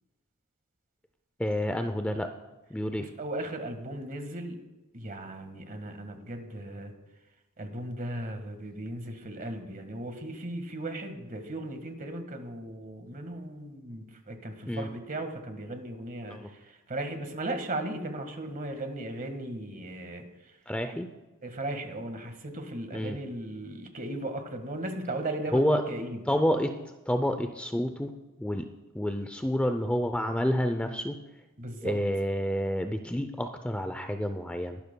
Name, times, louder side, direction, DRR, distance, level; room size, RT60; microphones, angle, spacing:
voice 1, 1.4-2.3 2.7-3.1 14.7-14.9 16.3-16.5 20.7-21.1 22.9-23.2 25.5-25.8 26.3-26.7 27.1-28.1 28.4-28.7 28.9-31.2 31.8-34.8, equal, 5° left, 7 dB, 0.5 m, -29 dB
voice 2, 3.0-4.6 4.9-6.9 7.6-16.6 16.9-20.2 20.9-21.0 21.4-26.2 31.6-31.9, right 1 dB, 40° right, 6 dB, 1.6 m, -37 dB
21.5 x 12.0 x 2.2 m, 1.1 s
head